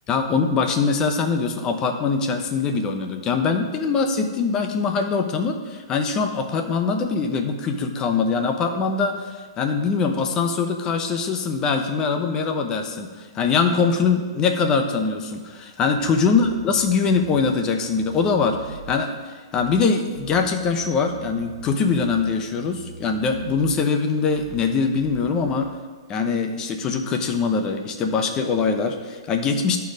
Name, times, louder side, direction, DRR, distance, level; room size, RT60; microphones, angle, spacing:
voice 1, 0.1-9.2 9.6-13.1 13.3-19.1 19.5-25.7 26.1-29.8, left 5 dB, 25° left, 5 dB, 0.9 m, -22 dB
sound 1, 15.9-17.5 17.7-19.0 19.5-19.9 20.1-22.3 22.5-23.8 24.3-24.7 24.9-25.5, right 5 dB, 75° right, 0.9 m, -40 dB
11.5 x 4.7 x 5.0 m, 1.5 s
hypercardioid pair, 140°, 3 cm